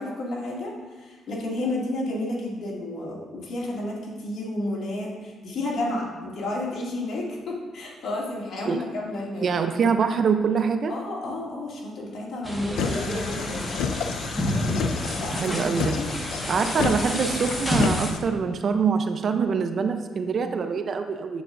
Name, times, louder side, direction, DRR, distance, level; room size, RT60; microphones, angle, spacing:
voice 1, 0.0-9.5 10.9-13.7 15.2-16.1 16.6-17.2, left 1 dB, 65° left, -4 dB, 2.3 m, -31 dB
voice 2, 9.4-10.9 15.3-16.0 16.5-21.4, right 6 dB, 50° right, 7 dB, 0.6 m, -24 dB
sound 1, 12.4-18.1, equal, 15° left, 1.5 m, -29 dB
sound 2, 12.8-18.2, left 6 dB, 85° left, 0.5 m, -30 dB
9.2 x 7.3 x 2.6 m, 1.3 s
cardioid pair, 90°, 0 cm